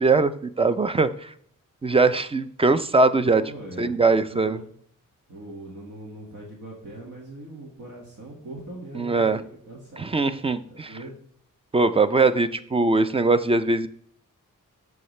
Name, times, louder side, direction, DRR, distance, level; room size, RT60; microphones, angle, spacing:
voice 1, 0.0-1.3 1.8-3.4 3.8-4.6 9.0-9.4 10.0-10.9 11.7-13.9, right 3 dB, 20° right, 12 dB, 0.4 m, -21 dB
voice 2, 3.4-4.0 4.3-4.7 5.3-10.4 10.7-11.2, right 1 dB, 70° right, -3 dB, 1.8 m, -41 dB
13.5 x 5.8 x 3.2 m, 0.62 s
wide cardioid pair, 150°, 33 cm